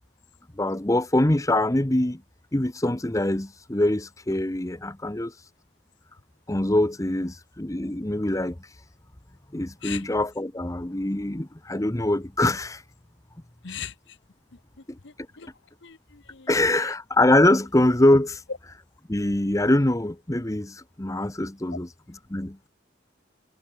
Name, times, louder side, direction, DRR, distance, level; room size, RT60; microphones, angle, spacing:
voice 1, 0.6-2.2 2.5-5.3 6.5-8.6 9.5-12.8 14.9-15.0 16.5-18.4 19.1-21.9 22.3-22.6, left 1 dB, 15° left, 0.9 m, -23 dB
voice 2, 13.6-14.2 15.0-15.5 15.8-16.9, left 8 dB, 60° left, 1.1 m, -40 dB
head